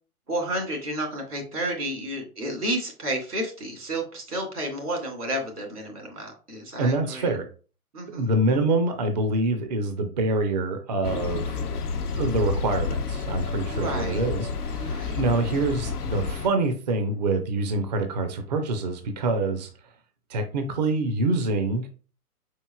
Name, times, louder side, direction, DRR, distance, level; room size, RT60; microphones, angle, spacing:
voice 1, 0.3-7.3 7.9-8.3 13.7-14.2 14.8-15.2, right 1 dB, 85° right, 1 dB, 2.5 m, -31 dB
voice 2, 6.8-7.5 8.1-11.6 12.1-19.7 20.3-21.9, right 2 dB, 30° right, 6 dB, 0.5 m, -26 dB
sound 1, 11.0-16.5, left 5 dB, 80° left, 0.8 m, -30 dB
5.1 x 4.6 x 2.3 m, 0.37 s
hypercardioid pair, 135°, 46 cm